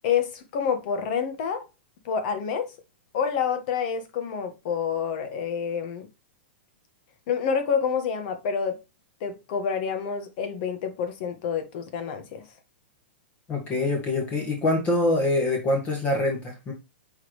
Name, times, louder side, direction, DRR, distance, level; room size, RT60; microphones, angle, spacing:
voice 1, 0.0-1.6 2.0-2.7 3.1-6.1 7.3-8.8 9.2-12.4, left 7 dB, 50° left, 1.8 m, -28 dB
voice 2, 13.5-16.7, left 2 dB, 25° left, 2.1 m, -25 dB
8.3 x 4.3 x 3.3 m
hypercardioid pair, 125°, 6 cm